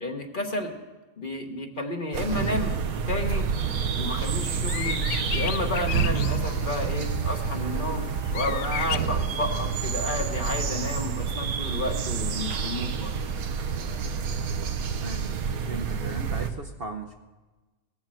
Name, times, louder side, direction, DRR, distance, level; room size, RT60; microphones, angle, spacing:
voice 1, 0.0-0.7 1.2-2.8 3.1-3.5 3.9-5.0 5.3-8.0 8.3-13.1, left 1 dB, 35° left, 4 dB, 1.4 m, -31 dB
sound 1, 2.1-16.5, right 6 dB, 85° right, 1.4 m, -28 dB
sound 2, 4.0-9.1, left 10 dB, 75° left, 1.0 m, -35 dB
voice 2, 14.9-15.3 15.6-17.1, right 3 dB, 45° right, 5 dB, 0.9 m, -37 dB
18.5 x 7.4 x 7.7 m, 1.2 s
omnidirectional pair, 1.5 m